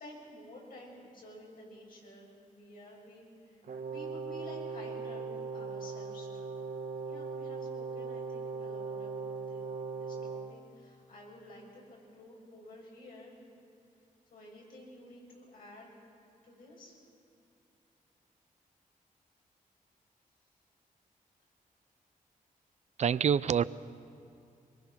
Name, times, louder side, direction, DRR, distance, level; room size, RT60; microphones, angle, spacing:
voice 1, 0.0-3.6 3.9-6.6 7.0-9.7 9.9-13.3 14.3-15.9 16.4-17.0, left 1 dB, 80° left, -2 dB, 6.8 m, -52 dB
Brass instrument, 3.6-10.6, right 4 dB, 80° right, 1.7 m, -39 dB
voice 2, 23.0-23.6, right 8 dB, 55° right, 17 dB, 0.4 m, -26 dB
24.0 x 22.5 x 5.9 m, 2.7 s
wide cardioid pair, 125°, 14 cm